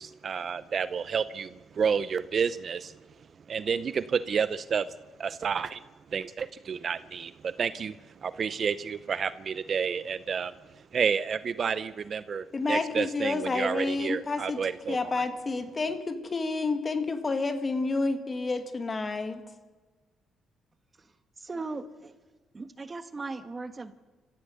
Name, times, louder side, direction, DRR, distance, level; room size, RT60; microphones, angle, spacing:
voice 1, 0.0-2.9 3.5-4.9 5.2-5.8 6.1-8.0 8.2-10.5 10.9-15.2, right 6 dB, 50° right, 15 dB, 0.6 m, -30 dB
voice 2, 12.5-14.6 14.9-19.4, left 3 dB, 30° left, 8 dB, 1.9 m, -29 dB
voice 3, 21.4-22.1 22.5-23.9, right 3 dB, 30° right, 10 dB, 1.4 m, -38 dB
24.5 x 15.0 x 7.0 m, 1.3 s
cardioid pair, 90°, 0 cm